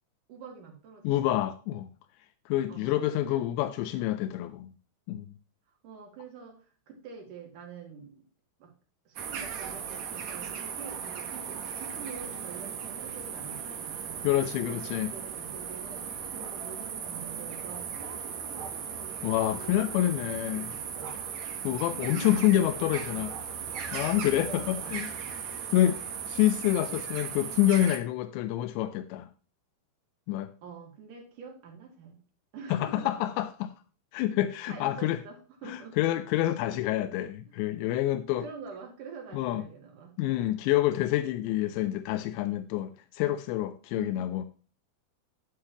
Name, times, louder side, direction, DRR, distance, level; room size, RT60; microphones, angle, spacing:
voice 1, 0.3-1.1 2.7-3.4 5.8-6.6 6.9-8.2 8.6-8.7 9.1-14.3 14.6-19.2 19.5-21.1 21.5-23.3 24.5-25.0 26.9-27.0 30.6-32.2 32.5-33.3 34.7-36.0 36.5-37.0 37.5-37.6 38.4-40.1 43.9-44.3, right 5 dB, 55° right, 1 dB, 3.3 m, -46 dB
voice 2, 1.0-1.9 2.5-4.7 5.1-5.3 14.2-15.1 19.2-20.7 21.6-23.3 23.9-25.1 25.7-26.0 26.3-29.3 30.3-30.5 32.7-33.7 34.1-35.2 35.7-38.5 39.3-39.6 40.2-44.5, left 13 dB, 90° left, 10 dB, 2.8 m, -27 dB
sound 1, 9.2-28.0, right 7 dB, 75° right, 1.6 m, -37 dB
11.5 x 8.5 x 3.0 m, 0.36 s
omnidirectional pair, 5.0 m